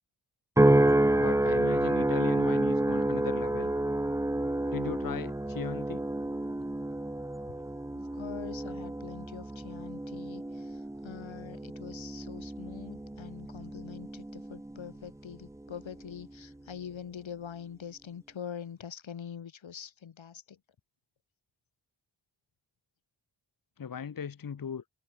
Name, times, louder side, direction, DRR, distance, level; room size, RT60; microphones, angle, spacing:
sound 1, 0.6-15.0 15.6-16.0, right 1 dB, 5° right, 0.6 m, -29 dB
voice 1, 1.2-3.7 4.7-6.0 23.8-24.8, left 7 dB, 45° left, 1.1 m, -38 dB
voice 2, 7.9-20.6, left 8 dB, 80° left, 2.5 m, -44 dB
wide cardioid pair, 100°, 46 cm